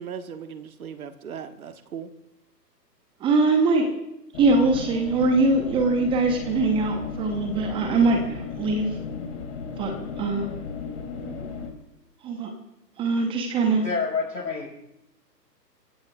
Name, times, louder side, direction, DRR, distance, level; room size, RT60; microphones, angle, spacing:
voice 1, 0.0-2.1 11.2-11.5, right 7 dB, 55° right, 9 dB, 1.4 m, -38 dB
voice 2, 3.2-3.9 4.4-8.9 9.8-10.5 12.2-12.5 13.0-13.8, right 3 dB, 10° right, 4 dB, 0.9 m, -22 dB
sound 1, 4.3-11.7, left 5 dB, 40° left, 2.9 m, -35 dB
voice 3, 13.8-14.7, left 5 dB, 80° left, 1 dB, 5.3 m, -27 dB
30.0 x 16.5 x 2.4 m, 0.87 s
figure-of-eight pair, 130°, 50 cm